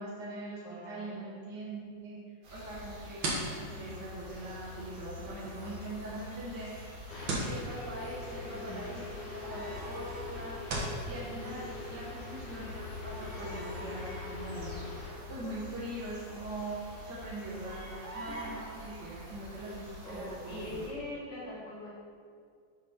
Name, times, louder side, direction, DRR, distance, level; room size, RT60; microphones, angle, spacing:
voice 1, 0.0-2.2 2.5-6.7 7.4-10.6 11.0-14.7 15.3-20.8, right 1 dB, 70° right, -7 dB, 0.9 m, -42 dB
voice 2, 0.6-1.2 8.5-8.8 11.1-12.1 18.3-18.4 20.0-21.9, left 1 dB, 85° left, -9 dB, 3.3 m, -43 dB
sound 1, 2.4-20.9, left 2 dB, 85° right, 3.5 m, -45 dB
sound 2, 2.7-11.0, right 2 dB, 55° right, 1.7 m, -41 dB
sound 3, 7.1-15.1, left 4 dB, 45° left, 1.5 m, -45 dB
8.0 x 3.1 x 5.5 m, 2.2 s
omnidirectional pair, 3.5 m